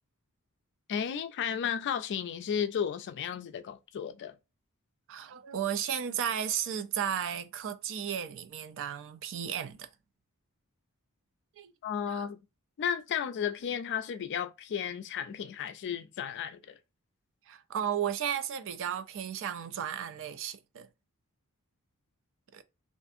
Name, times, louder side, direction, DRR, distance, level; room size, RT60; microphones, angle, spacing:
voice 1, 0.9-4.4 11.8-12.4 12.8-16.7, left 8 dB, 50° left, 0.3 m, -33 dB
voice 2, 5.1-9.9 11.6-11.7 12.1-12.3 17.5-20.9 22.5-22.6, right 9 dB, 60° right, 0.4 m, -34 dB
2.6 x 2.4 x 2.5 m
head